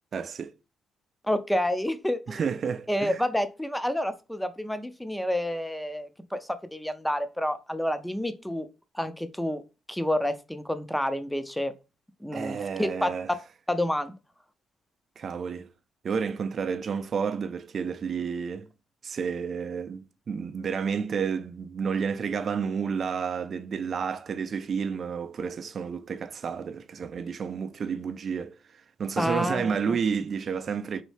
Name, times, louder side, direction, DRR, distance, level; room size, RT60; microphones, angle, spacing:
voice 1, 0.1-0.5 2.3-3.2 12.3-13.3 15.2-15.7 16.0-18.7 19.0-31.0, right 6 dB, 50° right, 0.4 m, -31 dB
voice 2, 1.2-2.4 2.9-8.7 8.9-9.6 9.9-11.7 12.2-13.1 13.7-14.1 29.2-29.7, left 1 dB, 5° left, 0.5 m, -29 dB
4.1 x 2.7 x 3.2 m
cardioid pair, 90°, 0 cm